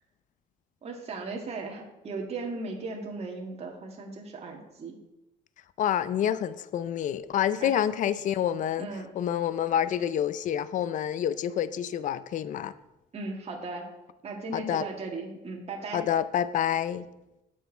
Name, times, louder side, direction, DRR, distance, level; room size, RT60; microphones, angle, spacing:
voice 1, 0.8-5.0 7.6-7.7 8.8-9.1 13.1-13.9 14.2-16.1, right 3 dB, 40° right, 0 dB, 1.9 m, -37 dB
voice 2, 5.8-8.9 9.2-12.7 14.5-14.9 15.9-17.1, left 10 dB, 50° left, 15 dB, 0.5 m, -28 dB
8.1 x 6.3 x 5.8 m, 0.95 s
cardioid pair, 110°, 17 cm